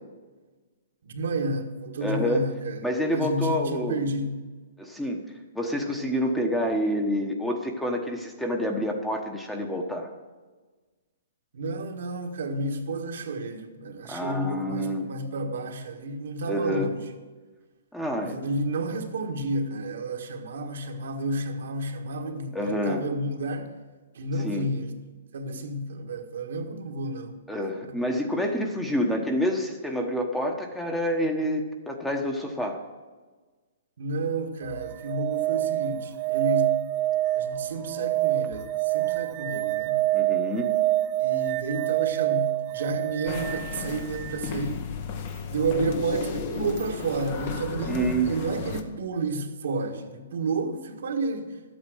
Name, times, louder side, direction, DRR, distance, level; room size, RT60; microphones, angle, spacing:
voice 1, 1.0-2.8 3.1-4.4 11.5-17.0 18.2-23.7 24.1-24.9 25.3-27.3 27.9-28.0 34.0-36.8 37.3-40.0 41.2-44.8 45.5-51.6, right 2 dB, 75° right, 1.6 m, -31 dB
voice 2, 2.0-2.4 2.8-4.0 4.8-5.2 5.5-10.1 14.1-15.1 16.5-16.9 17.9-18.4 22.5-23.1 24.4-24.7 27.5-32.8 40.1-40.7 47.9-48.4, equal, 5° left, 1.1 m, -28 dB
sound 1, 34.6-44.4 46.8-46.9, right 17 dB, 30° right, 0.4 m, -27 dB
sound 2, 43.3-48.8, left 6 dB, 45° left, 1.1 m, -34 dB
12.5 x 8.7 x 6.3 m
hypercardioid pair, 150°, 0 cm